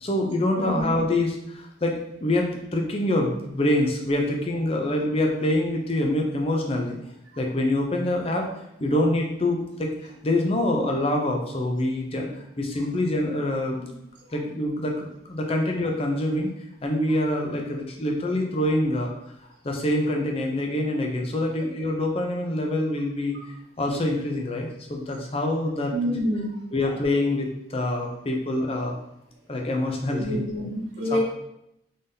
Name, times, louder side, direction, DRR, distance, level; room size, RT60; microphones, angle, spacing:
voice 1, 0.0-7.0 7.4-8.5 8.8-12.3 12.6-13.9 14.3-16.5 16.8-19.1 19.6-23.3 23.8-25.9 26.7-29.0 29.5-30.4 31.1-31.2, left 1 dB, 30° left, 1 dB, 0.6 m, -25 dB
voice 2, 25.9-26.5 30.2-31.2, equal, 85° right, -2 dB, 1.1 m, -27 dB
3.9 x 3.5 x 2.7 m, 0.81 s
head